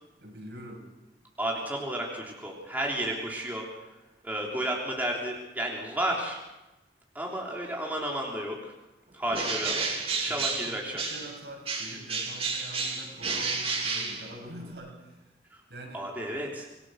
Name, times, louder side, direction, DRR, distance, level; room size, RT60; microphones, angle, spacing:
voice 1, 0.2-0.8 10.3-10.8 11.1-15.2 15.7-16.1, right 1 dB, 70° right, 0 dB, 7.3 m, -44 dB
voice 2, 1.4-3.7 4.2-6.4 7.1-8.7 9.1-9.8 10.1-11.0 15.5-15.6 15.9-16.7, right 1 dB, 10° right, -2 dB, 3.4 m, -32 dB
Bird, 9.3-11.4 11.7-14.7, right 4 dB, 35° right, 3.2 m, -31 dB
27.0 x 19.5 x 6.5 m, 1.0 s
head